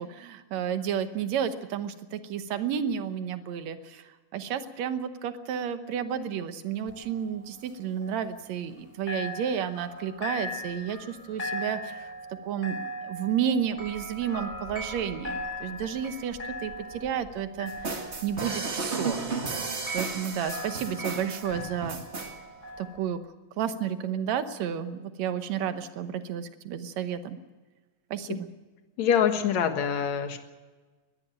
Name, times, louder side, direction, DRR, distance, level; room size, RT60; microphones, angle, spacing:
voice 1, 0.0-12.1 12.5-17.7 18.2-22.0 22.8-23.2 23.6-27.4 28.1-28.5, right 8 dB, 65° right, 10 dB, 2.2 m, -32 dB
sound 1, 6.9-8.8 9.1-23.0, equal, 20° left, 5.2 m, -39 dB
sound 2, 17.7-22.3, right 4 dB, 30° right, 1.4 m, -33 dB
voice 2, 29.0-30.4, left 8 dB, 65° left, 6 dB, 2.7 m, -25 dB
20.5 x 14.0 x 9.0 m, 1.3 s
omnidirectional pair, 3.6 m